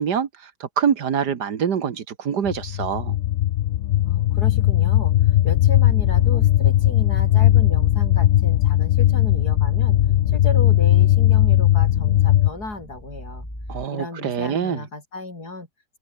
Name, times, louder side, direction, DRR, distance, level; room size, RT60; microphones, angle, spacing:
voice 1, 0.0-3.2 13.7-14.8, right 7 dB, 70° right, 2.0 m, -25 dB
sound 1, 2.5-12.5, left 13 dB, 85° left, 0.6 m, -18 dB
voice 2, 4.1-10.0 10.3-13.5 13.9-15.7, left 2 dB, 60° left, 5.8 m, -34 dB
sound 2, 5.7-13.9, equal, 10° left, 8.1 m, -36 dB
omnidirectional pair, 1.9 m